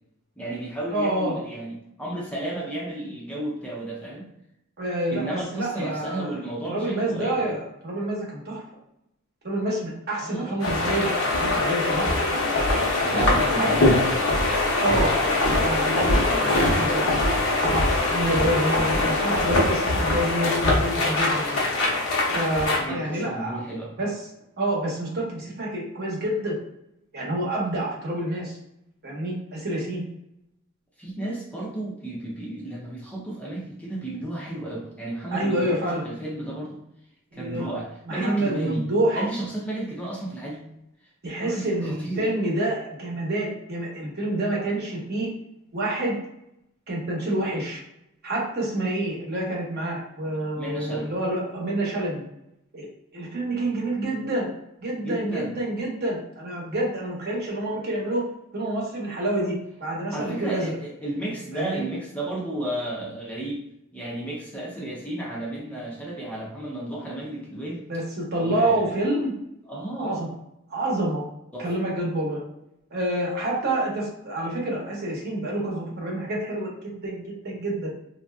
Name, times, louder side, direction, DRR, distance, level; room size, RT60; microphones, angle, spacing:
voice 1, 0.4-4.3 5.1-7.5 10.2-10.6 13.0-13.9 16.2-16.6 22.8-23.9 31.0-36.8 37.3-38.8 39.1-40.6 41.4-42.3 50.5-51.1 55.0-55.5 60.1-63.6 63.9-67.8 68.4-68.9 69.7-70.2 71.5-71.7, right 1 dB, 5° left, -4 dB, 0.5 m, -33 dB
voice 2, 0.9-1.4 4.8-6.4 6.7-8.6 9.4-12.1 13.1-13.7 14.8-15.2 15.5-17.1 17.6-21.6 22.3-23.6 24.0-24.1 24.6-26.5 27.1-28.6 29.0-30.0 35.3-36.0 37.3-37.7 38.1-39.3 41.2-45.3 45.7-46.2 46.9-47.8 48.2-52.2 52.7-52.9 53.1-54.5 54.8-58.2 58.5-60.7 61.5-61.8 67.9-69.3 70.0-70.3 70.7-71.2 71.6-72.4 72.9-77.9, right 1 dB, 50° right, -3 dB, 0.9 m, -28 dB
sound 1, 10.6-22.8, left 2 dB, 85° left, 0.9 m, -22 dB
3.3 x 2.6 x 2.2 m, 0.82 s
head